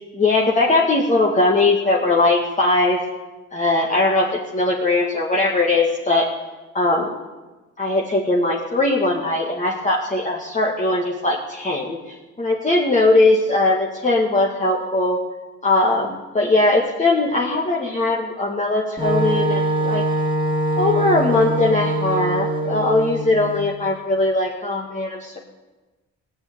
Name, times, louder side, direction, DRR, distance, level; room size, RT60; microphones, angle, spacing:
voice 1, 0.1-3.0 3.5-6.3 6.7-7.2 7.8-12.0 12.4-15.2 15.6-20.0 20.8-25.4, left 2 dB, 25° left, -2 dB, 1.9 m, -20 dB
Wind instrument woodwind instrument, 19.0-23.7, right 1 dB, 15° right, 2.3 m, -23 dB
17.0 x 6.7 x 9.6 m, 1.2 s
cardioid pair, 90°, 30 cm